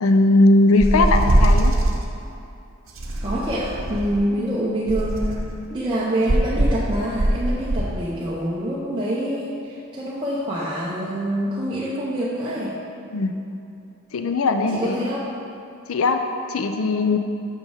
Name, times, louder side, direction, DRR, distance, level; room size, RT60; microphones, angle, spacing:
voice 1, 0.0-1.7 13.1-13.4 14.1-15.0 15.9-16.2 16.5-17.2, left 2 dB, 85° left, 6 dB, 0.5 m, -18 dB
sound 1, 0.8-2.0 3.0-4.2 4.9-5.6 6.3-7.9, right 1 dB, 75° right, 0.8 m, -21 dB
voice 2, 3.2-5.3 5.7-12.7 14.7-15.2, right 1 dB, 25° right, -7 dB, 0.8 m, -26 dB
6.3 x 5.4 x 6.4 m, 2.7 s
head